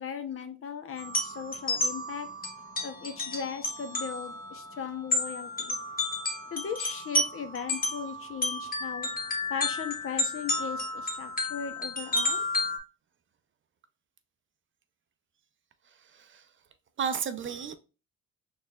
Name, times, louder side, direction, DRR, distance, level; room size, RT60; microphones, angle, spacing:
voice 1, 0.0-2.3 2.8-5.8 6.5-9.1 9.5-12.4, left 7 dB, 45° left, 0.7 m, -38 dB
sound 1, 1.0-12.8, left 2 dB, 30° left, 1.2 m, -32 dB
voice 2, 16.1-16.4 17.0-17.7, right 7 dB, 40° right, 0.5 m, -32 dB
4.3 x 3.2 x 2.3 m
cardioid pair, 90°, 30 cm